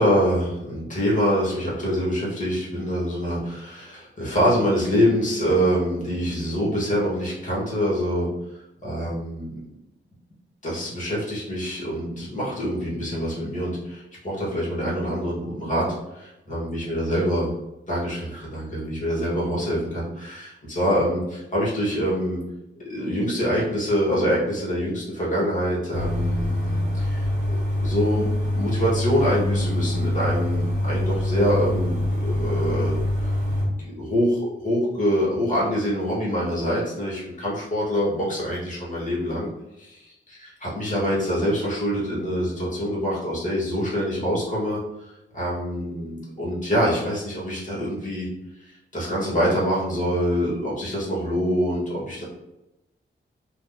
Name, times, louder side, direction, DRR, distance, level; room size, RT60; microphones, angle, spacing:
voice 1, 0.0-8.3 8.8-9.5 10.6-15.8 16.1-17.5 17.9-22.4 22.9-27.3 27.8-33.0 33.2-33.3 33.6-39.5 39.8-45.1 45.3-48.3 48.9-52.2, equal, 40° left, -5 dB, 1.5 m, -25 dB
sound 1, 25.9-33.7, left 1 dB, 35° right, 1.0 m, -25 dB
2.9 x 2.4 x 3.8 m, 0.93 s
wide cardioid pair, 100°, 21 cm